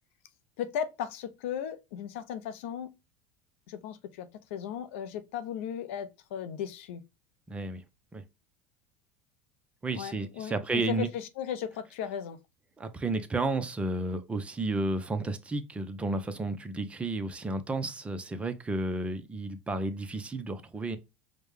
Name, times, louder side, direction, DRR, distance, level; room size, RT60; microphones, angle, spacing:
voice 1, 0.6-2.9 3.7-7.0 9.9-12.4, left 9 dB, 80° left, 0.5 m, -36 dB
voice 2, 7.5-7.8 8.1-8.2 9.8-11.1 12.8-21.0, right 2 dB, 20° right, 0.6 m, -32 dB
4.9 x 2.2 x 3.2 m
supercardioid pair, 105°, 7 cm